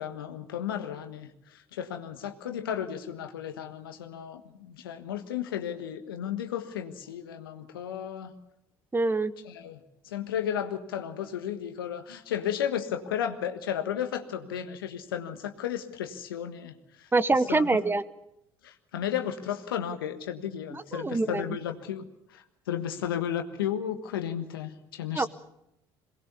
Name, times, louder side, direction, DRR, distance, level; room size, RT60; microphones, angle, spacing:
voice 1, 0.0-8.3 9.4-9.8 10.0-17.8 18.6-22.0 22.3-25.3, left 9 dB, 85° left, 7 dB, 1.5 m, -34 dB
voice 2, 8.9-9.3 17.1-18.0 20.7-21.4 25.1-25.3, right 3 dB, 20° right, 15 dB, 1.1 m, -25 dB
22.5 x 19.5 x 7.0 m, 0.84 s
hypercardioid pair, 60°, 12 cm